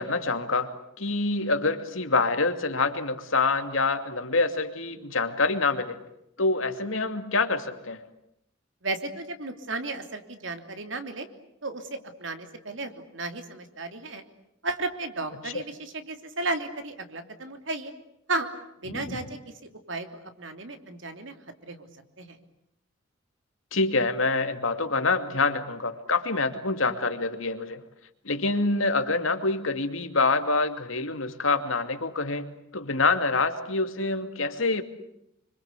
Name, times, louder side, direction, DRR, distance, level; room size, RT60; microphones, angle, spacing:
voice 1, 0.0-6.0 6.4-8.0 15.4-15.5 18.9-19.2 23.7-27.8 28.2-34.8, left 3 dB, 85° left, 8 dB, 2.6 m, -26 dB
voice 2, 8.8-11.3 11.6-14.2 14.6-17.9 18.3-18.5 18.8-19.4 19.9-20.1 20.4-21.3 21.7-21.9 22.2-22.4, right 2 dB, 65° right, 7 dB, 3.1 m, -34 dB
27.0 x 25.0 x 8.4 m, 0.79 s
head